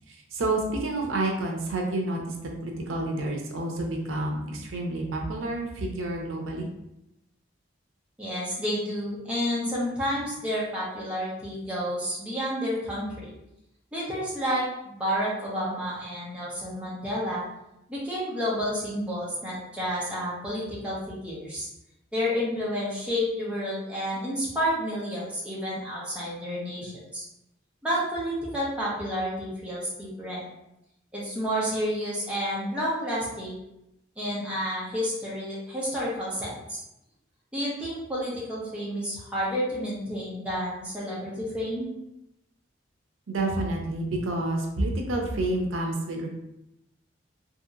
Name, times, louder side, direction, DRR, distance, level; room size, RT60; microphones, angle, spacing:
voice 1, 0.1-6.7 43.3-46.3, right 2 dB, 85° right, 1 dB, 0.5 m, -29 dB
voice 2, 8.2-13.3 13.9-17.4 17.9-21.7 22.1-27.2 27.8-30.4 31.1-33.5 34.2-36.8 37.5-41.9, equal, 5° right, -7 dB, 0.7 m, -30 dB
2.9 x 2.8 x 2.4 m, 0.87 s
head